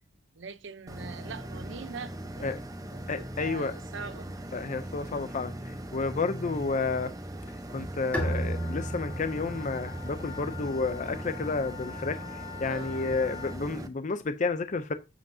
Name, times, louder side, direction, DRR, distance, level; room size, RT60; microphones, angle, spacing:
voice 1, 0.4-2.6 2.9-4.3 12.6-13.0, right 5 dB, 70° right, 0.7 m, -42 dB
Computer Noise, 0.9-13.9, right 1 dB, 20° right, 0.9 m, -40 dB
voice 2, 3.1-3.7 4.5-7.1 7.7-12.2 12.6-14.9, left 4 dB, 40° left, 0.5 m, -31 dB
sound 1, 8.0-13.6, left 7 dB, 60° left, 3.9 m, -45 dB
Bowed string instrument, 8.1-11.6, right 1 dB, 10° left, 2.1 m, -35 dB
8.1 x 7.6 x 2.7 m
head